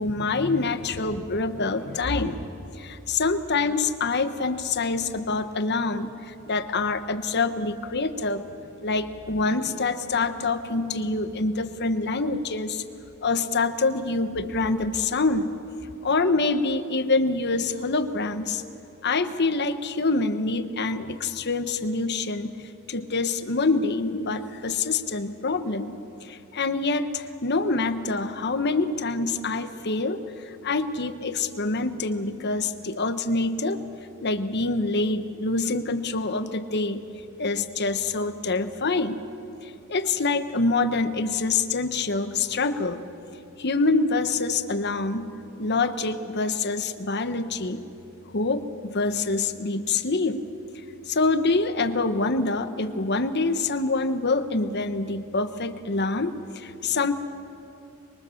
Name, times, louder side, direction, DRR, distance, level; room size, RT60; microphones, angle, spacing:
voice 1, 0.0-2.5 2.7-8.4 8.8-12.8 13.2-15.5 16.0-18.6 19.0-22.6 22.9-33.8 34.2-37.0 37.4-39.2 39.6-43.0 43.6-45.3 45.6-47.8 48.3-50.4 51.1-57.1, left 3 dB, 55° left, 10 dB, 1.2 m, -26 dB
25.0 x 22.5 x 7.2 m, 2.8 s
head